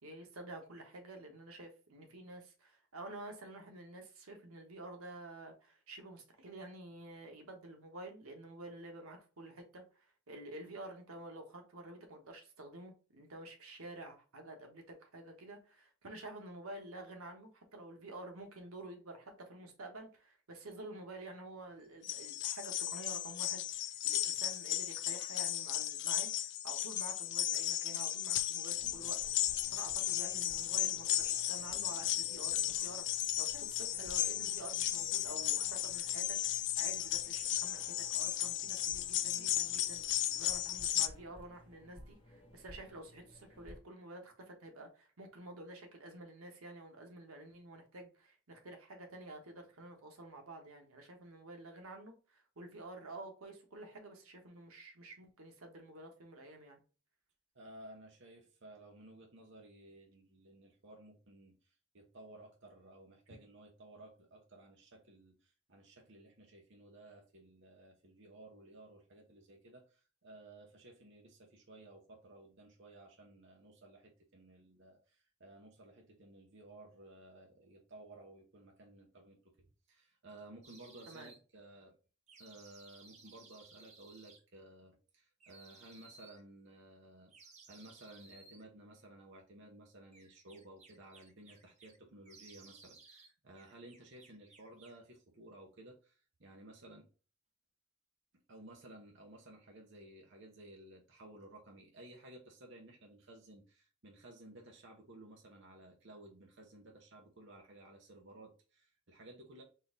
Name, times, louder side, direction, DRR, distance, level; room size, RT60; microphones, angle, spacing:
voice 1, 0.0-56.8 81.1-81.3, right 2 dB, 90° right, 1.3 m, -50 dB
sound 1, 22.0-41.1, left 12 dB, 55° left, 0.4 m, -35 dB
sound 2, 28.7-43.8, left 1 dB, 25° left, 1.0 m, -57 dB
voice 2, 57.5-82.0 82.4-87.3 87.7-97.1 98.5-109.6, right 1 dB, 60° right, 1.0 m, -56 dB
sound 3, 80.6-81.4 82.3-84.4 85.4-86.4 87.3-88.6 90.1-92.0 92.2-93.3 93.6-95.0, right 4 dB, 35° right, 1.0 m, -59 dB
4.3 x 2.7 x 3.7 m
head